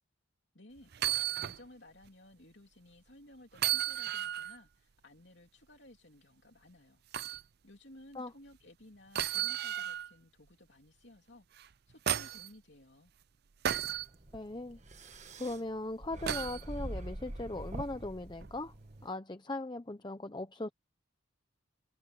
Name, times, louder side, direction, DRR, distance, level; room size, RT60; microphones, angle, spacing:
voice 1, 0.5-7.4 7.6-13.1, left 1 dB, 60° left, 3.2 m, -57 dB
sound 1, 0.9-1.6 2.0-2.1 3.5-4.6 7.1-7.4 9.1-10.1 11.6-12.5 13.6-14.1 16.3-16.6 18.4-18.5, right 11 dB, 50° right, 0.5 m, -33 dB
sound 2, 13.9-19.1, right 1 dB, 35° right, 1.4 m, -45 dB
voice 2, 14.3-14.8 15.4-18.7 19.0-20.7, left 2 dB, 20° left, 0.8 m, -39 dB
head